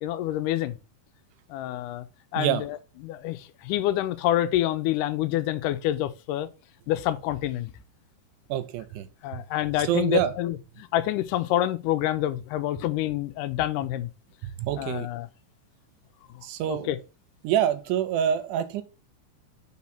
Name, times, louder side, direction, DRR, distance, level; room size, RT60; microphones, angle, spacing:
voice 1, 0.0-0.8 1.5-2.1 2.3-2.8 3.0-6.5 6.9-7.7 9.2-14.1 14.8-15.3 16.4-17.0, left 13 dB, 80° left, 2.1 m, -27 dB
voice 2, 8.5-9.1 9.8-10.3 14.6-15.1 16.4-16.9 17.4-18.8, right 10 dB, 80° right, 1.9 m, -26 dB
4.7 x 4.2 x 5.7 m
omnidirectional pair, 4.0 m